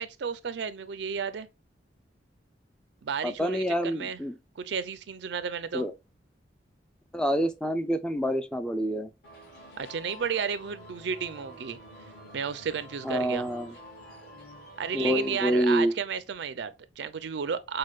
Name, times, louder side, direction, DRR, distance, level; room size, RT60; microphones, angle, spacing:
voice 1, 0.0-1.5 3.0-4.2 4.6-5.9 9.8-11.8 12.3-13.5 14.8-17.8, right 6 dB, 70° right, 0.4 m, -33 dB
voice 2, 3.2-4.3 5.7-5.9 7.1-9.1 13.0-13.7 14.9-15.9, equal, 5° left, 0.3 m, -27 dB
sound 1, 9.2-15.9, equal, 60° left, 1.9 m, -48 dB
6.3 x 2.2 x 2.3 m
head